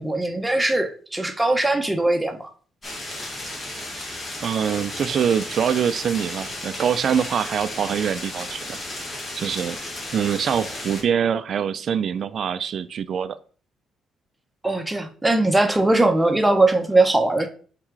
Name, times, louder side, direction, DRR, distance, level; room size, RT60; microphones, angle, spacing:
voice 1, 0.0-2.5 14.6-17.5, right 2 dB, 10° right, 6 dB, 1.0 m, -20 dB
sound 1, 2.8-11.0, left 1 dB, 35° left, 2.6 m, -34 dB
voice 2, 4.4-8.8 9.4-9.8 10.1-13.4, right 8 dB, 60° right, 13 dB, 0.5 m, -24 dB
5.6 x 3.8 x 4.7 m, 0.43 s
cardioid pair, 90°, 0 cm